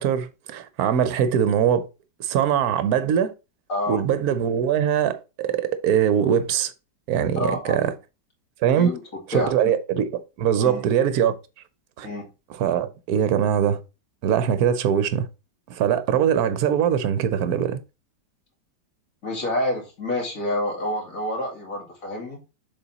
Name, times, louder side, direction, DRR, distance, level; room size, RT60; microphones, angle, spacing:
voice 1, 0.0-1.9 2.2-3.3 3.9-6.7 7.1-7.9 8.6-8.9 9.3-11.4 12.0-12.1 12.6-13.8 14.2-15.3 15.7-17.8, right 9 dB, 65° right, 1.1 m, -22 dB
voice 2, 3.7-4.0 7.4-7.9 8.8-9.0 9.3-9.5 10.6-10.8 12.0-12.2 19.2-22.4, left 1 dB, 50° left, 2.5 m, -28 dB
6.8 x 4.0 x 4.1 m
omnidirectional pair, 1.9 m